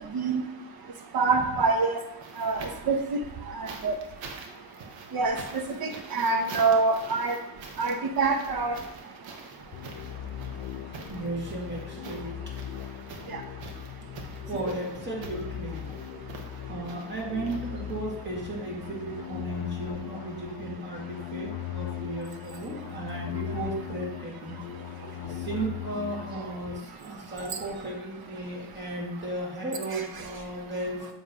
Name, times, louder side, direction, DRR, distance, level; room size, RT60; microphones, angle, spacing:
voice 1, 1.1-2.0 2.4-2.6 2.9-3.0 3.8-3.9 5.1-5.3 6.1-7.4 7.8-8.8, right 4 dB, 45° right, 6 dB, 1.0 m, -24 dB
sound 1, 1.3-3.0 3.7-18.2 19.3-19.4, right 4 dB, 60° right, 1.3 m, -45 dB
sound 2, 9.7-26.8, left 12 dB, 60° left, 0.5 m, -39 dB
voice 2, 11.1-12.4 14.5-15.9 16.7-24.6 25.1-31.1, right 2 dB, 20° right, -3 dB, 2.2 m, -35 dB
7.3 x 3.4 x 5.5 m, 0.94 s
cardioid pair, 100°, 50 cm